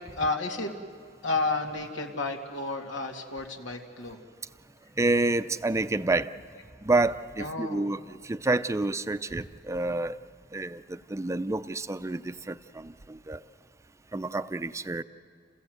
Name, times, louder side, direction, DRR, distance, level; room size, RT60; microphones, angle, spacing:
voice 1, 0.1-0.7 1.2-4.2 7.4-7.9, left 3 dB, 85° left, 2 dB, 2.4 m, -31 dB
voice 2, 5.0-6.3 6.8-10.2 10.5-13.4 14.1-15.0, right 2 dB, 15° right, 13 dB, 0.5 m, -28 dB
29.5 x 15.5 x 8.0 m, 2.2 s
head